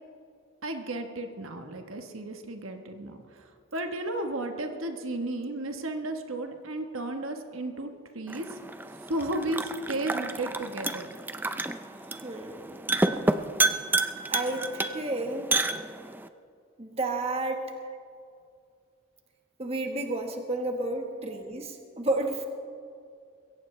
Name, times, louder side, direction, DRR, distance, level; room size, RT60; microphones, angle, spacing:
voice 1, 0.6-3.4 3.7-8.6 9.1-11.1 17.7-18.0 21.3-21.4, right 1 dB, 85° right, 5 dB, 1.3 m, -34 dB
sound 1, 8.3-16.3, right 2 dB, 10° right, 0.4 m, -30 dB
voice 2, 12.2-13.0 14.3-15.5 16.8-17.7 19.6-22.5, right 2 dB, 30° right, 3 dB, 1.3 m, -31 dB
22.0 x 17.0 x 3.3 m, 2.3 s
head